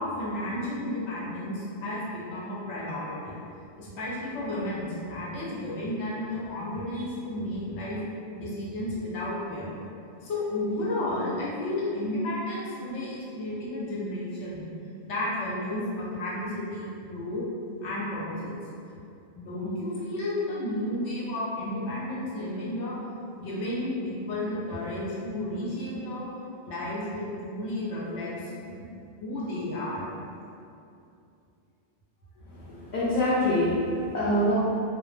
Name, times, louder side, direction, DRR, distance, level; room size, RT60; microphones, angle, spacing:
voice 1, 0.0-3.4 3.8-8.0 8.4-9.8 10.2-14.7 15.1-17.5 17.8-18.6 19.3-23.0 23.4-26.3 26.6-30.1, left 1 dB, 85° left, -7 dB, 1.0 m, -32 dB
voice 2, 32.4-34.5, left 1 dB, 55° left, -10 dB, 0.5 m, -25 dB
2.2 x 2.1 x 3.1 m, 2.6 s
omnidirectional pair, 1.2 m